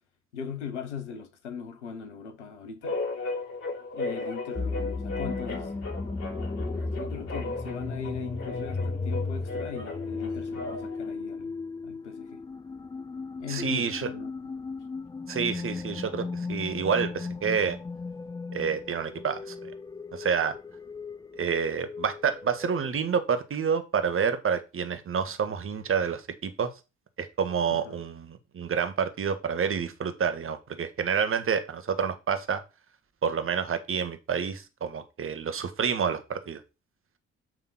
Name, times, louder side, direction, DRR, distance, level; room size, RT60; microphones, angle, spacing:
voice 1, 0.3-3.0 3.9-5.7 6.7-11.5 11.8-12.4 13.4-14.3 27.7-28.0, left 6 dB, 80° left, 0.9 m, -39 dB
sound 1, 2.8-11.1, left 3 dB, 50° left, 3.0 m, -36 dB
sound 2, 4.6-22.9, left 3 dB, 10° left, 0.5 m, -36 dB
voice 2, 13.5-14.1 15.3-17.8 18.5-19.7 20.1-20.5 21.3-26.7 27.2-32.6 33.2-36.6, right 6 dB, 35° right, 1.5 m, -28 dB
7.5 x 3.7 x 6.1 m
figure-of-eight pair, 45°, 35 cm